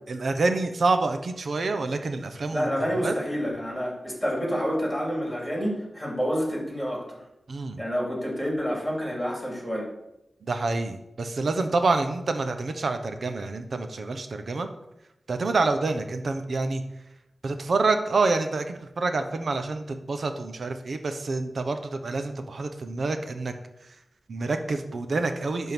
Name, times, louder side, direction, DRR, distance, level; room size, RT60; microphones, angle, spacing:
voice 1, 0.1-2.7 3.0-3.1 7.5-7.8 10.4-14.7 15.3-16.8 17.4-23.5 23.8-24.0 24.3-25.7, right 3 dB, 65° right, 7 dB, 0.9 m, -27 dB
voice 2, 2.5-7.0 7.8-9.9, equal, ahead, -2 dB, 3.1 m, -28 dB
11.0 x 3.8 x 6.1 m, 0.88 s
wide cardioid pair, 110°, 0 cm